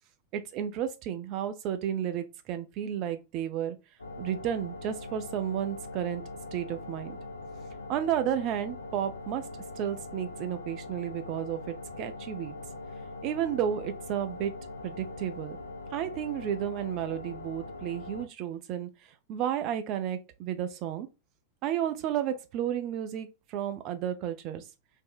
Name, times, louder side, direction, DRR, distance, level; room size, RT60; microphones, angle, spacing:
voice 1, 0.3-3.8 4.2-6.2 6.5-7.2 7.9-9.5 9.8-12.5 13.2-14.5 14.8-15.6 15.9-18.9 19.3-21.1 21.6-24.6, right 10 dB, 40° right, 0.5 m, -32 dB
sound 1, 4.0-18.3, left 2 dB, 80° left, 0.4 m, -42 dB
3.4 x 2.1 x 2.5 m
figure-of-eight pair, 90°, 0 cm